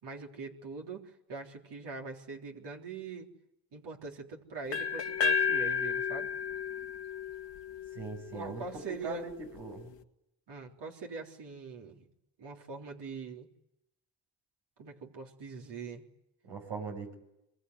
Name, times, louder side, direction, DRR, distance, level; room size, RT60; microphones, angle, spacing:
voice 1, 0.0-3.3 3.7-6.3 8.3-9.3 10.5-12.0 12.4-13.5 14.8-16.0, right 4 dB, 65° right, 0 dB, 3.8 m, -42 dB
sound 1, 4.7-8.6, left 6 dB, 75° left, 1.9 m, -32 dB
voice 2, 7.9-9.9 16.4-17.1, right 5 dB, 85° right, 2 dB, 7.4 m, -41 dB
25.0 x 23.0 x 9.7 m, 0.87 s
supercardioid pair, 60°, 44 cm